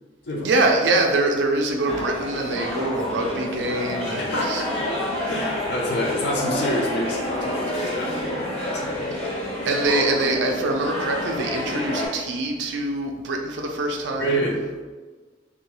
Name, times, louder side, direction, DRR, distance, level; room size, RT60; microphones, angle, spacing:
voice 1, 0.4-4.6 9.7-14.4, right 2 dB, 75° right, 2 dB, 0.4 m, -24 dB
sound 1, 1.8-12.1, left 1 dB, 35° left, 0.8 m, -28 dB
voice 2, 4.2-4.9 5.3-9.2 14.2-14.6, equal, 65° left, -2 dB, 0.6 m, -28 dB
2.3 x 2.2 x 3.0 m, 1.3 s
head